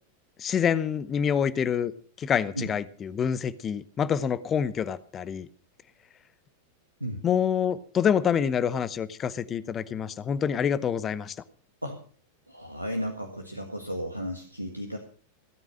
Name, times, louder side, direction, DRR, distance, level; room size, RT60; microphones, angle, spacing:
voice 1, 0.4-1.9 2.2-5.5 7.2-11.3, left 8 dB, 25° left, 16 dB, 0.9 m, -27 dB
voice 2, 12.5-15.0, equal, 85° right, 5 dB, 1.7 m, -34 dB
17.0 x 9.0 x 6.3 m, 0.43 s
figure-of-eight pair, 90°, 0 cm